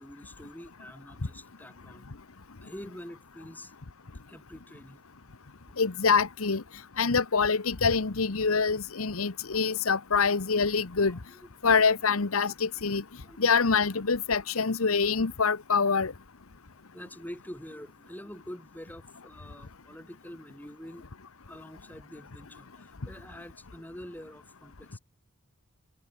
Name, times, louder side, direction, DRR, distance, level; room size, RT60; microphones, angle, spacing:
voice 1, 0.0-2.1 2.6-3.7 4.3-5.0 9.0-9.1 11.1-11.5 13.2-13.4 16.6-21.1 21.5-25.0, equal, 10° left, 6.7 m, -46 dB
voice 2, 5.8-6.6 7.0-11.2 11.6-13.0 13.4-16.1, left 5 dB, 85° left, 1.1 m, -25 dB
head